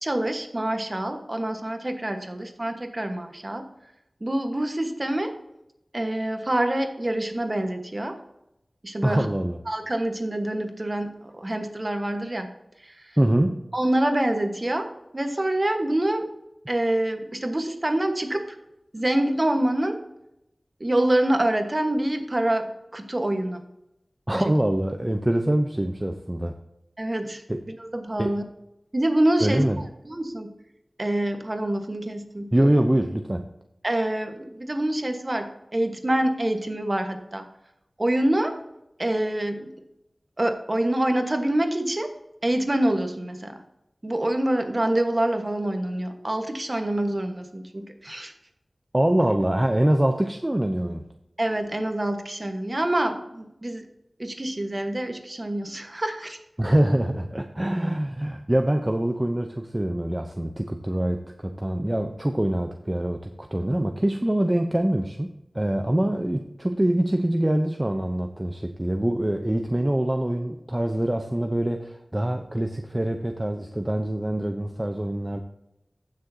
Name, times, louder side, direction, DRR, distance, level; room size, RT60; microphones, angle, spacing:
voice 1, 0.0-3.7 4.2-5.3 5.9-8.2 8.8-9.3 9.7-12.5 12.8-13.1 13.7-16.3 16.7-18.6 18.9-20.0 20.8-23.6 24.3-24.5 27.0-27.4 27.8-28.4 28.9-29.6 30.0-30.5 31.0-32.5 33.8-37.5 38.0-38.6 39.0-39.7 40.4-42.1 42.4-43.6 44.0-48.3 51.4-53.8 54.2-56.4, right 1 dB, 35° right, 5 dB, 1.3 m, -26 dB
voice 2, 9.0-9.6 13.2-13.7 24.3-26.5 27.5-27.6 28.2-28.4 29.4-29.8 32.5-33.5 48.9-51.1 56.6-75.4, right 1 dB, 20° right, 5 dB, 0.7 m, -24 dB
15.0 x 6.5 x 2.8 m, 0.86 s
wide cardioid pair, 50°, 0 cm